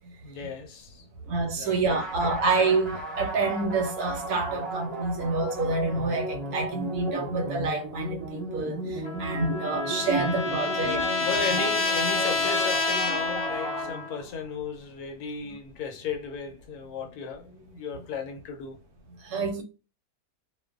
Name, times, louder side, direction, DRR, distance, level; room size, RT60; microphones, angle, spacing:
voice 1, 0.2-1.1 1.5-2.0 11.3-18.8, left 5 dB, 75° left, 1.1 m, -35 dB
voice 2, 1.3-11.1 11.5-11.6 15.4-15.5 19.2-19.6, right 3 dB, 75° right, 1.1 m, -28 dB
sound 1, 1.9-14.5, right 2 dB, ahead, 0.8 m, -35 dB
Trumpet, 9.0-14.2, left 3 dB, 60° left, 0.8 m, -28 dB
2.5 x 2.2 x 2.3 m
omnidirectional pair, 1.7 m